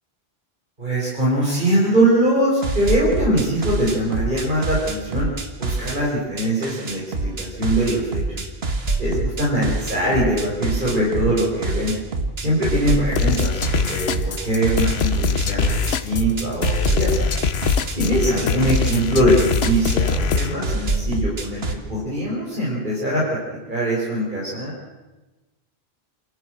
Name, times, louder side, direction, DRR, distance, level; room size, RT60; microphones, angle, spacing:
voice 1, 0.8-5.3 5.6-7.0 7.4-8.4 9.0-11.9 12.4-17.3 17.9-21.6 21.9-23.4 23.7-24.7, right 1 dB, 50° right, -6 dB, 5.4 m, -22 dB
sound 1, 2.6-6.0 6.4-21.8, right 2 dB, 75° right, 2.0 m, -26 dB
sound 2, 13.1-20.5, left 6 dB, 80° left, 1.2 m, -23 dB
27.5 x 13.5 x 7.8 m, 1.1 s
omnidirectional pair, 1.1 m